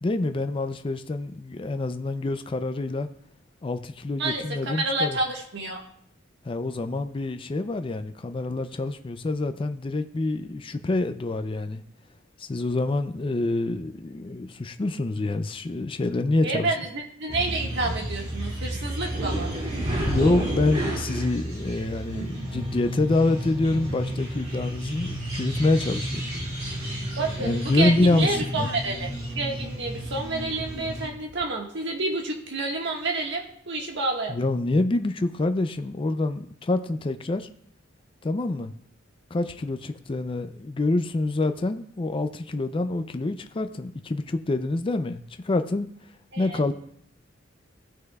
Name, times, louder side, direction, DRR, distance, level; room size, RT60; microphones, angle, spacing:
voice 1, 0.0-3.1 3.6-5.2 6.4-11.8 12.4-16.8 20.1-26.3 27.4-28.7 34.3-37.5 38.2-38.7 39.3-45.9 46.4-46.7, left 2 dB, 25° left, 0.4 m, -26 dB
voice 2, 4.2-5.8 16.4-19.6 27.2-29.1 29.3-34.4 46.3-46.6, right 2 dB, 65° right, 1.5 m, -29 dB
sound 1, 17.3-31.1, right 1 dB, 35° right, 2.2 m, -31 dB
15.5 x 6.3 x 2.3 m
head